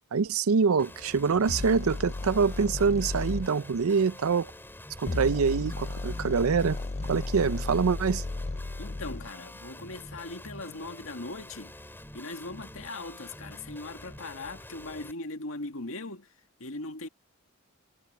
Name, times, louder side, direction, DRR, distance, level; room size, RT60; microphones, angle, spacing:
voice 1, 0.0-4.5 5.0-6.8 7.1-8.2, right 5 dB, 75° right, 0.5 m, -25 dB
Guitar, 0.8-15.1, left 1 dB, 10° left, 5.6 m, -47 dB
sound 1, 1.5-3.5 5.0-9.3, left 2 dB, 30° left, 0.5 m, -34 dB
voice 2, 8.8-11.8 12.1-16.3 16.6-17.1, left 2 dB, 70° left, 2.1 m, -39 dB
head